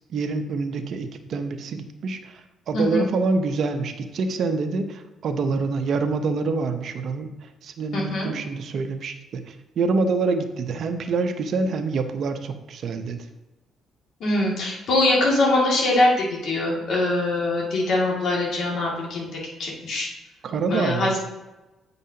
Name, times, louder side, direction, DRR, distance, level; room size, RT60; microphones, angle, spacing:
voice 1, 0.0-13.2 20.4-21.1, right 4 dB, 60° right, 7 dB, 0.7 m, -26 dB
voice 2, 7.9-8.3 14.2-19.3 19.6-20.1 20.7-21.2, left 2 dB, 65° left, -3 dB, 2.2 m, -22 dB
8.6 x 5.4 x 2.8 m, 1.0 s
cardioid pair, 85°, 0 cm